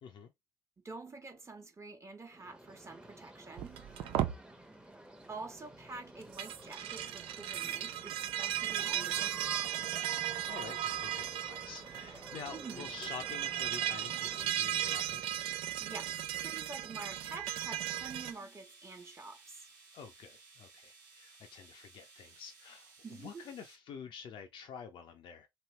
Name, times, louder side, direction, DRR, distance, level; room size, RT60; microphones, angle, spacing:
voice 1, 0.8-3.9 5.3-9.6 12.5-12.9 15.8-19.7 23.0-23.5, right 3 dB, 30° right, 1.0 m, -48 dB
sound 1, 2.3-14.4, right 1 dB, 10° right, 0.8 m, -52 dB
sound 2, 3.6-4.4 6.2-18.3, right 12 dB, 65° right, 0.5 m, -36 dB
voice 2, 10.4-15.2 19.9-22.9 23.2-25.5, left 7 dB, 60° left, 0.5 m, -48 dB
sound 3, 17.7-23.8, right 4 dB, 80° right, 1.2 m, -59 dB
3.0 x 2.7 x 3.1 m
hypercardioid pair, 45°, 10 cm